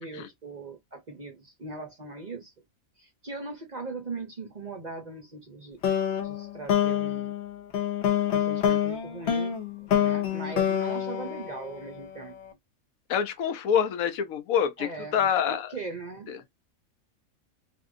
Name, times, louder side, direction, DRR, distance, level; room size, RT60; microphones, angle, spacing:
voice 1, 0.0-2.5 3.0-5.8 6.2-7.4 8.3-9.6 10.0-12.4 14.8-16.3, right 3 dB, 45° right, 0.6 m, -40 dB
sound 1, 5.8-12.2, left 9 dB, 60° left, 1.0 m, -27 dB
voice 2, 13.1-15.7 16.3-16.4, left 8 dB, 80° left, 1.1 m, -26 dB
3.4 x 2.7 x 2.5 m
omnidirectional pair, 1.4 m